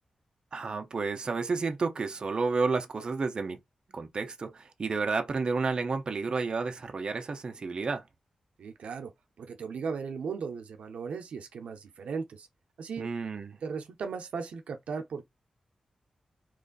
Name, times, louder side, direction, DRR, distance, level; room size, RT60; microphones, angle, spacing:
voice 1, 0.5-3.6 3.9-8.0 13.0-13.6, right 4 dB, 45° right, 0.6 m, -31 dB
voice 2, 8.6-9.1 9.4-12.5 12.8-13.1 13.6-15.3, right 5 dB, 85° right, 0.6 m, -37 dB
3.1 x 2.5 x 3.8 m
wide cardioid pair, 120°, 2 cm